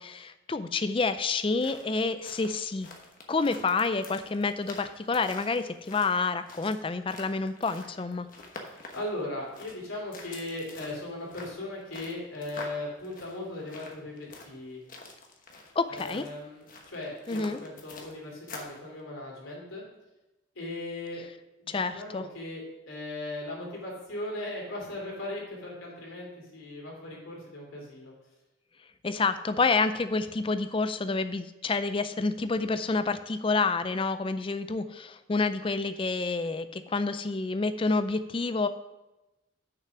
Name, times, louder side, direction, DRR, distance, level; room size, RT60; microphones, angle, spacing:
voice 1, 0.0-2.9 3.3-8.3 15.8-16.3 17.3-17.6 21.7-22.2 29.0-38.7, left 3 dB, 25° left, 12 dB, 0.4 m, -28 dB
sound 1, 1.3-18.8, left 3 dB, 40° left, 1.1 m, -47 dB
voice 2, 8.6-14.8 15.9-19.8 20.5-21.2 21.6-28.1, left 1 dB, 80° left, -3 dB, 3.1 m, -38 dB
6.7 x 5.9 x 6.0 m, 1.0 s
head